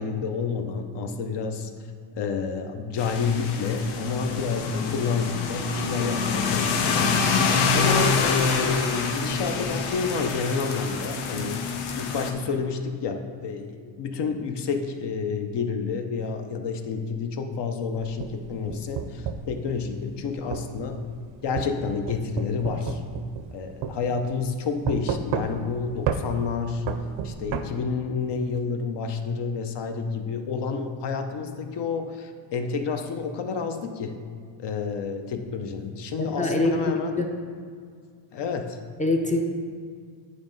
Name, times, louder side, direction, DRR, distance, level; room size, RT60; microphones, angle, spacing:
voice 1, 0.0-1.7 2.1-7.2 7.7-11.6 12.0-21.0 21.4-23.0 23.5-26.8 27.2-34.2 34.6-37.2 38.3-38.8, left 5 dB, 60° left, 6 dB, 0.7 m, -29 dB
sound 1, 3.0-12.3, left 5 dB, 90° left, 0.9 m, -26 dB
sound 2, 17.9-19.5 20.5-20.7 21.6-23.6 23.8-24.0 24.9-25.7 26.1-26.3 26.9-27.7, right 8 dB, 65° right, 0.6 m, -30 dB
voice 2, 36.2-37.3 39.0-39.5, left 2 dB, 15° left, 2 dB, 0.5 m, -24 dB
9.5 x 3.2 x 5.1 m, 2.1 s
cardioid pair, 135°, 49 cm